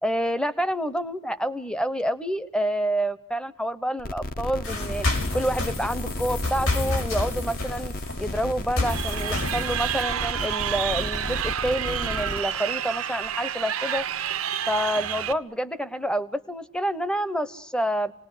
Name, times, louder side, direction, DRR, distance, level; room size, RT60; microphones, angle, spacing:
voice 1, 0.0-5.1 5.3-7.9 8.2-14.0 14.7-18.1, equal, 5° left, 14 dB, 0.9 m, -28 dB
sound 1, 4.0-12.4, left 1 dB, 40° left, 1.0 m, -33 dB
sound 2, 4.6-10.0, left 2 dB, 70° left, 6.1 m, -30 dB
Crowd, 8.9-15.3, right 9 dB, 85° right, 1.1 m, -29 dB
27.5 x 19.5 x 9.9 m, 0.90 s
head